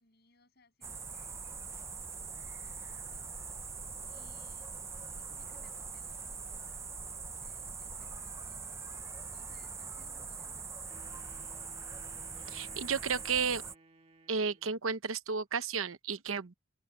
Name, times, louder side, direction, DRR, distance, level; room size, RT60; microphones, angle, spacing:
voice 1, 0.0-3.3 4.1-5.0 5.3-6.9 7.3-11.7, left 2 dB, 50° left, 7.7 m, -68 dB
sound 1, 0.8-13.7, right 5 dB, 15° right, 0.5 m, -43 dB
Wind instrument woodwind instrument, 10.9-14.9, right 3 dB, 30° right, 1.8 m, -59 dB
voice 2, 12.5-13.6 14.3-16.5, right 5 dB, 80° right, 0.9 m, -33 dB
open air
head